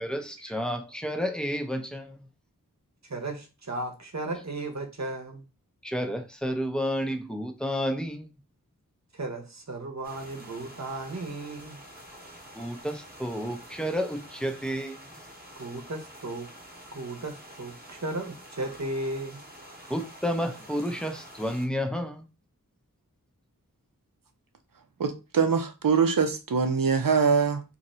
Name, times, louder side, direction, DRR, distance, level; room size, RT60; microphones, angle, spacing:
voice 1, 0.0-2.3 5.8-8.4 12.5-15.3 19.9-22.3, equal, ahead, 0.7 m, -31 dB
voice 2, 3.1-5.4 9.1-11.8 15.6-16.5 16.9-19.4, right 2 dB, 50° right, 0.9 m, -35 dB
sound 1, 10.0-21.7, equal, 25° right, 1.1 m, -48 dB
voice 3, 25.0-27.6, right 5 dB, 75° right, 0.6 m, -23 dB
2.8 x 2.6 x 4.2 m
wide cardioid pair, 40°, 34 cm